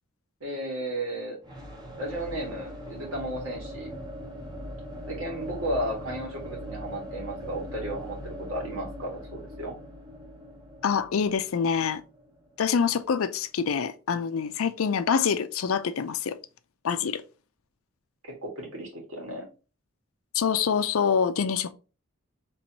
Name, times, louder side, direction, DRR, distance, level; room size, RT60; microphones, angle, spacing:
voice 1, 0.4-1.4 2.0-3.9 5.1-9.8 18.2-19.5, right 1 dB, 75° right, 1.7 m, -34 dB
sound 1, 1.4-13.2, equal, 20° right, 1.2 m, -41 dB
voice 2, 10.8-12.0 12.6-16.4 16.8-17.2 20.3-21.7, left 6 dB, 75° left, 0.5 m, -26 dB
4.5 x 3.1 x 2.8 m
head